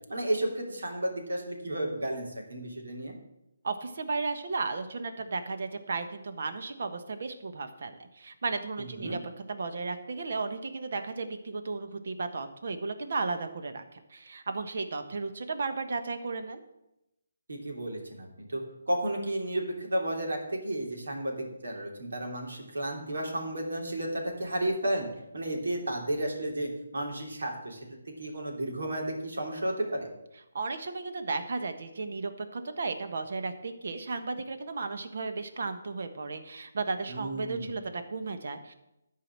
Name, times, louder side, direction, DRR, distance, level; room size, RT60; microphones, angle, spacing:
voice 1, 0.1-3.1 8.8-9.2 17.5-18.6 18.9-25.1 25.3-30.1 37.1-37.7, right 1 dB, 85° right, 0 dB, 2.9 m, -33 dB
voice 2, 3.6-9.2 9.5-16.6 30.5-38.7, right 3 dB, 60° right, 8 dB, 1.2 m, -34 dB
11.5 x 4.9 x 7.5 m, 0.88 s
hypercardioid pair, 160°, 0 cm